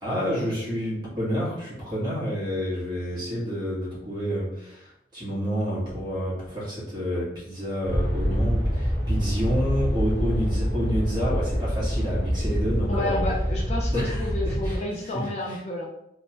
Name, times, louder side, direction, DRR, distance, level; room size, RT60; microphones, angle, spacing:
voice 1, 0.0-13.2 13.9-15.6, equal, 25° right, -7 dB, 1.1 m, -29 dB
sound 1, 7.8-14.8, equal, 10° left, 1.0 m, -26 dB
voice 2, 12.9-15.8, left 1 dB, 35° left, -2 dB, 0.4 m, -30 dB
3.0 x 2.1 x 2.9 m, 0.81 s
head